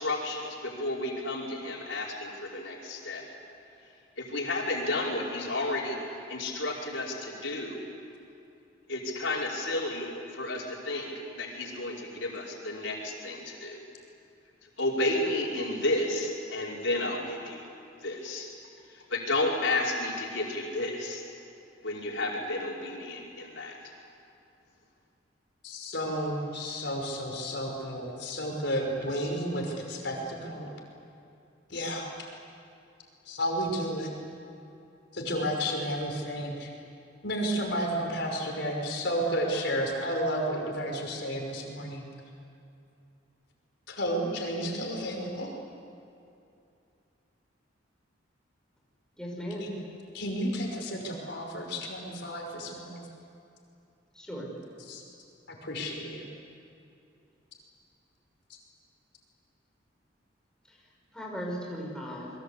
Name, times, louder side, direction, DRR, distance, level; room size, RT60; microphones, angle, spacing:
voice 1, 0.0-3.2 4.2-6.0 6.3-7.8 8.9-13.8 14.8-17.7 18.0-18.5 18.9-21.2 21.8-23.8, left 2 dB, 85° left, -2 dB, 5.2 m, -32 dB
voice 2, 25.6-30.7 31.7-32.1 33.3-34.1 35.1-36.7 37.2-42.0 43.9-45.5 49.6-49.7 50.1-53.0 54.9-55.0 55.5-56.3, equal, 65° left, 1 dB, 5.4 m, -32 dB
voice 3, 49.2-49.7 54.1-54.5 60.7-60.8 61.1-62.3, equal, 5° left, -2 dB, 5.6 m, -37 dB
28.5 x 23.0 x 8.4 m, 2.6 s
head